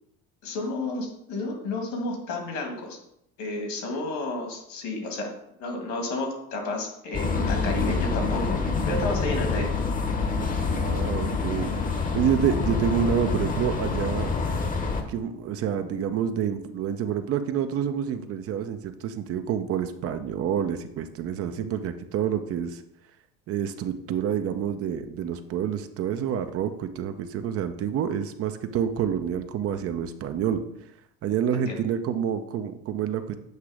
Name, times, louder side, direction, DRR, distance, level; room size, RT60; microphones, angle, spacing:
voice 1, 0.4-3.0 3.4-5.3 5.6-8.6 8.8-9.7 31.5-31.8, left 2 dB, 65° left, 2 dB, 2.1 m, -31 dB
sound 1, 7.1-15.0, left 4 dB, 25° left, 1.0 m, -26 dB
voice 2, 10.7-11.7 12.1-14.3 15.1-22.8 23.5-30.6 31.2-33.4, right 8 dB, 50° right, 8 dB, 0.7 m, -28 dB
8.0 x 2.9 x 4.9 m, 0.77 s
supercardioid pair, 95°, 30 cm